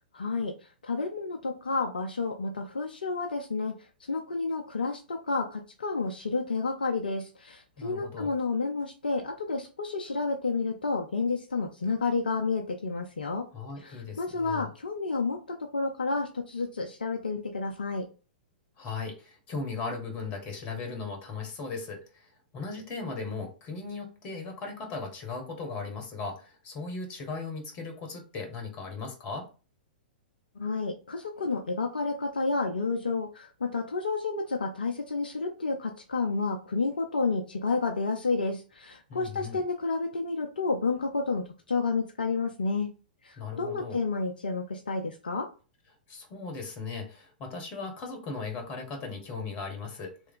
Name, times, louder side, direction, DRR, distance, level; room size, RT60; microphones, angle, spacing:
voice 1, 0.1-0.5 0.8-3.8 4.1-13.5 13.8-15.4 15.7-18.1 30.6-42.9 43.2-45.5, left 4 dB, 70° left, 3 dB, 0.6 m, -30 dB
voice 2, 7.8-8.3 13.5-14.7 18.8-29.5 39.1-39.6 43.4-44.0 46.1-50.1, left 4 dB, 30° left, 4 dB, 1.3 m, -37 dB
3.3 x 3.0 x 3.7 m, 0.34 s
figure-of-eight pair, 105°, 5 cm